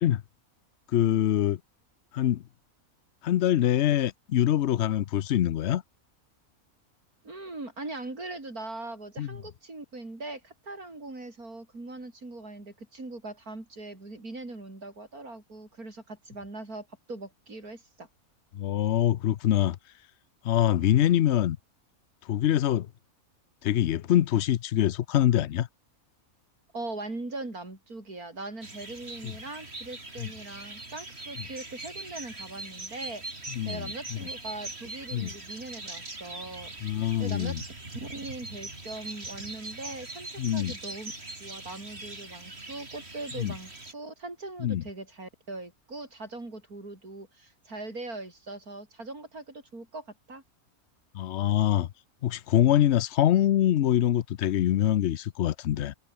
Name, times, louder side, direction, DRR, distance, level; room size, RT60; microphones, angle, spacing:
voice 1, 0.9-1.6 2.1-2.4 3.2-5.8 9.2-9.4 18.5-19.8 20.4-21.6 22.3-22.9 23.6-25.7 29.2-29.3 30.2-30.3 33.5-34.2 35.1-35.3 36.8-37.6 40.4-40.7 43.4-43.5 44.6-44.8 51.1-51.9 52.2-55.9, left 11 dB, 60° left, 0.8 m, -24 dB
voice 2, 7.2-18.1 26.7-33.2 33.6-36.7 37.2-37.7 37.9-41.1 41.4-50.4, right 2 dB, 80° right, 6.2 m, -40 dB
sound 1, 28.6-43.9, right 2 dB, 45° right, 4.3 m, -41 dB
omnidirectional pair, 1.5 m